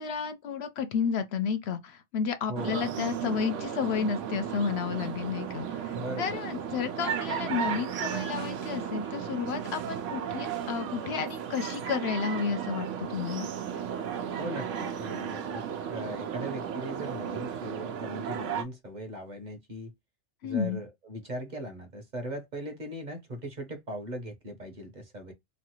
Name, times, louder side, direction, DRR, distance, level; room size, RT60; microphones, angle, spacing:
voice 1, 0.0-13.5 20.4-20.8, left 6 dB, 70° left, 0.8 m, -32 dB
voice 2, 2.5-2.9 5.9-6.4 14.4-15.6 15.9-19.9 20.4-25.3, equal, 45° right, 0.8 m, -39 dB
sound 1, 2.6-18.6, right 8 dB, 90° right, 0.9 m, -34 dB
3.1 x 2.3 x 2.9 m
omnidirectional pair, 1.2 m